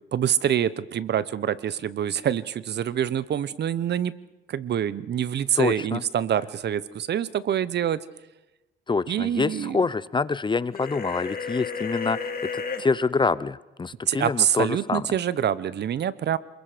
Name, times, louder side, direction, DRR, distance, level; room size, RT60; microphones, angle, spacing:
voice 1, 0.1-4.1 4.5-8.0 9.1-9.8 14.1-16.4, right 9 dB, 60° right, 18 dB, 0.9 m, -26 dB
voice 2, 5.6-6.0 8.9-15.1, left 4 dB, 25° left, 18 dB, 0.6 m, -26 dB
sound 1, 10.7-12.8, left 5 dB, 45° left, 2.7 m, -32 dB
27.5 x 21.5 x 5.1 m, 1.0 s
cardioid pair, 90°, 20 cm